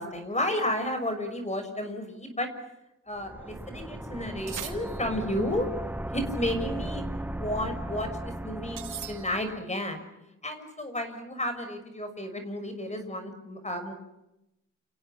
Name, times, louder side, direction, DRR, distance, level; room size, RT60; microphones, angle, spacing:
voice 1, 0.0-2.5 3.1-5.7 6.1-8.8 9.1-10.1 10.4-13.9, left 1 dB, 20° left, 7 dB, 6.3 m, -32 dB
sound 1, 3.2-9.6, right 1 dB, 5° right, 1.0 m, -36 dB
sound 2, 4.5-5.4 8.8-9.7, right 8 dB, 85° right, 2.7 m, -41 dB
30.0 x 29.5 x 6.0 m, 0.89 s
wide cardioid pair, 105°, 30 cm